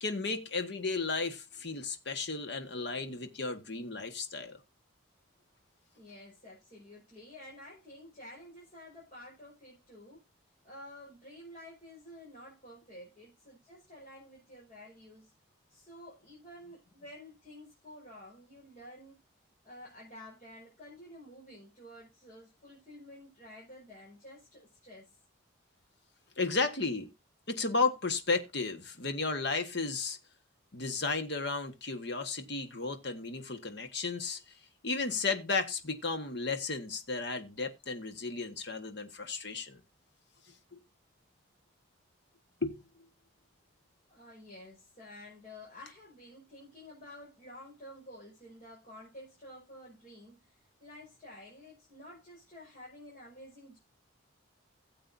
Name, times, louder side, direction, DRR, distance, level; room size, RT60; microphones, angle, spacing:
voice 1, 0.0-4.6 26.4-27.1 27.5-30.2 30.7-34.4 34.8-39.8 40.7-40.8 42.6-42.8, left 4 dB, 55° left, 1.4 m, -34 dB
voice 2, 5.9-10.3 10.6-15.3 15.7-19.2 19.6-25.2 44.1-53.8, left 1 dB, 35° left, 5.5 m, -51 dB
17.0 x 7.8 x 2.7 m
head